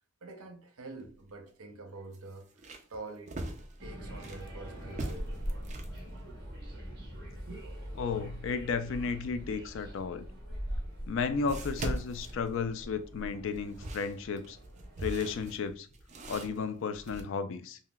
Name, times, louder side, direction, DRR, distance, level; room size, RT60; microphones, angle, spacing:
voice 1, 0.2-3.4 3.8-5.8 7.5-7.7 10.9-11.0, right 3 dB, 85° right, 0.7 m, -46 dB
sound 1, 0.9-1.1 1.5-1.6 2.1-4.5 4.9-6.0 10.2-10.3 11.5-13.0 13.5-17.2, right 1 dB, 35° right, 0.4 m, -40 dB
sound 2, 3.8-15.4, equal, 50° right, 1.1 m, -42 dB
voice 2, 8.0-10.3 11.1-14.6 15.0-15.9 16.3-17.8, left 5 dB, 60° left, 0.3 m, -33 dB
5.5 x 2.1 x 2.3 m
head